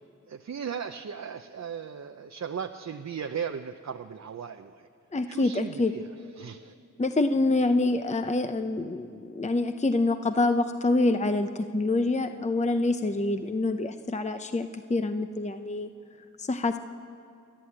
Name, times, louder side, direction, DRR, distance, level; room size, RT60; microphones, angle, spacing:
voice 1, 0.3-4.9 5.3-6.0 6.4-6.7, right 7 dB, 55° right, 6 dB, 0.7 m, -37 dB
voice 2, 5.1-5.9 7.0-15.9 16.4-16.8, left 2 dB, 20° left, 8 dB, 0.7 m, -26 dB
29.0 x 11.5 x 8.8 m, 2.4 s
cardioid pair, 65°, 32 cm